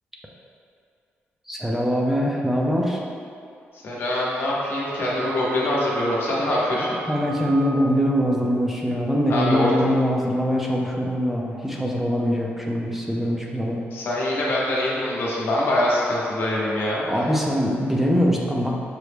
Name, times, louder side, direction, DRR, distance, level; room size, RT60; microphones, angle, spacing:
voice 1, 1.5-3.0 7.1-13.8 17.1-18.8, equal, 5° right, -2 dB, 0.4 m, -23 dB
voice 2, 3.8-6.9 9.3-9.7 13.9-17.0, left 1 dB, 60° left, -6 dB, 0.9 m, -24 dB
Wind instrument woodwind instrument, 4.6-8.2, right 9 dB, 75° right, 0.5 m, -37 dB
5.8 x 2.0 x 3.3 m, 2.4 s
cardioid pair, 105°, 4 cm